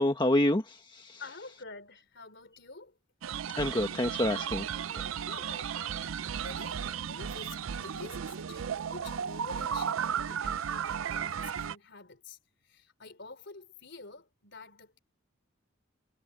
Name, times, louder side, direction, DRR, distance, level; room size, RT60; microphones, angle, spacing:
voice 1, 0.0-1.2 3.5-4.7 4.9-5.1, left 1 dB, 25° left, 1.5 m, -28 dB
voice 2, 1.1-2.9 5.3-6.1 6.4-12.4 12.6-15.0, left 3 dB, 60° left, 4.1 m, -48 dB
sound 1, 3.2-11.7, right 8 dB, 85° right, 0.5 m, -35 dB
head